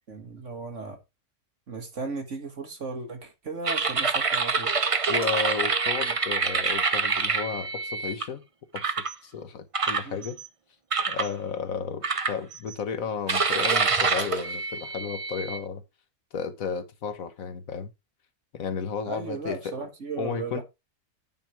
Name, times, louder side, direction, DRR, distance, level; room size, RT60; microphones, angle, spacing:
voice 1, 0.1-1.0 1.7-4.7 10.0-10.2 19.1-20.6, right 4 dB, 55° right, 2.2 m, -36 dB
sound 1, 3.6-8.2 8.8-9.1 9.7-10.5 10.9-11.3 12.0-12.7 13.3-15.6, right 4 dB, 35° right, 0.6 m, -26 dB
voice 2, 5.1-8.4 8.7-9.0 9.2-10.4 11.1-15.8 16.3-17.9 18.5-19.9 20.2-20.6, left 6 dB, 65° left, 1.4 m, -33 dB
9.4 x 5.3 x 4.5 m
omnidirectional pair, 1.6 m